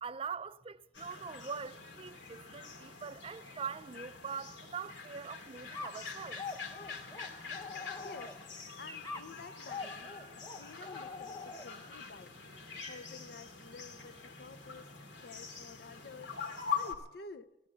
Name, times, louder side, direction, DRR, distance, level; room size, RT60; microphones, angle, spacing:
voice 1, 0.0-6.4, right 6 dB, 30° right, 0.4 m, -43 dB
sound 1, 0.9-16.9, left 6 dB, 75° left, 2.4 m, -44 dB
sound 2, 5.7-8.6 9.0-11.9, left 4 dB, 20° left, 1.0 m, -45 dB
voice 2, 8.0-8.4 8.8-10.2 10.5-12.4 12.8-17.7, left 4 dB, 60° left, 0.7 m, -51 dB
14.5 x 13.5 x 7.0 m
head